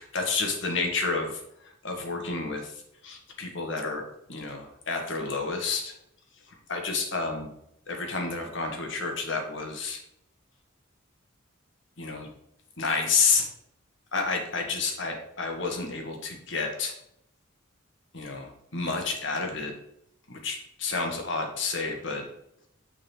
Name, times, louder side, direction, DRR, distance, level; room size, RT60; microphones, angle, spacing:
voice 1, 0.1-2.7 3.0-4.0 4.3-5.9 6.7-7.5 7.9-10.0 12.0-12.3 12.8-13.5 14.1-16.9 18.1-19.7 20.3-22.2, left 4 dB, 60° left, 2 dB, 1.5 m, -30 dB
6.2 x 3.9 x 6.1 m, 0.77 s
head